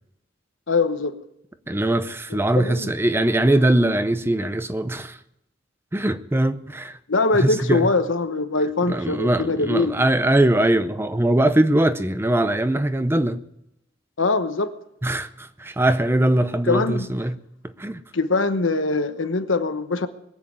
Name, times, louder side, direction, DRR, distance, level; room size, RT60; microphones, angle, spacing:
voice 1, 0.7-1.1 2.3-2.9 7.1-9.9 14.2-14.7 16.7-17.1 18.1-20.1, left 3 dB, 90° left, 1.1 m, -22 dB
voice 2, 1.7-5.2 5.9-7.0 7.3-7.9 8.9-13.4 15.0-17.4 17.6-18.0, right 1 dB, 10° right, 0.6 m, -21 dB
21.0 x 7.6 x 8.6 m
head